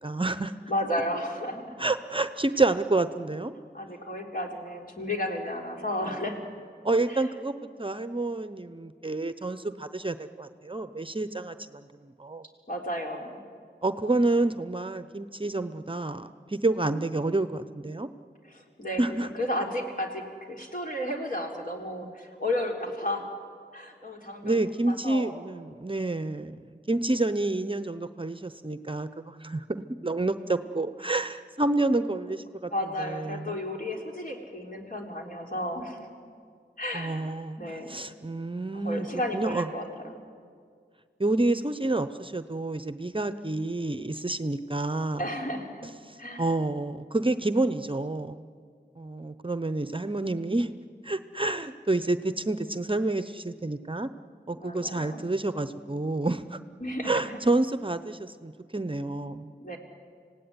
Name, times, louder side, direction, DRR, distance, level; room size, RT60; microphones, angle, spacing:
voice 1, 0.0-0.5 1.8-3.5 6.8-12.4 13.8-18.1 19.0-19.3 22.0-22.1 24.4-32.7 33.0-33.6 36.9-39.1 39.3-39.7 41.2-45.2 46.4-48.4 49.0-50.7 51.0-54.1 54.5-56.6 57.0-59.5, right 2 dB, 30° right, 11 dB, 0.7 m, -29 dB
voice 2, 0.7-1.9 3.7-6.5 7.1-7.3 12.7-13.4 18.4-23.3 23.7-24.6 24.9-25.3 30.4-30.5 32.7-36.0 36.8-38.0 38.7-40.2 45.2-45.9 46.2-46.5 54.5-55.2 56.8-57.4 59.6-59.8, left 1 dB, 50° left, 0 dB, 3.7 m, -33 dB
26.0 x 17.5 x 9.6 m, 2.1 s
wide cardioid pair, 65°, 18 cm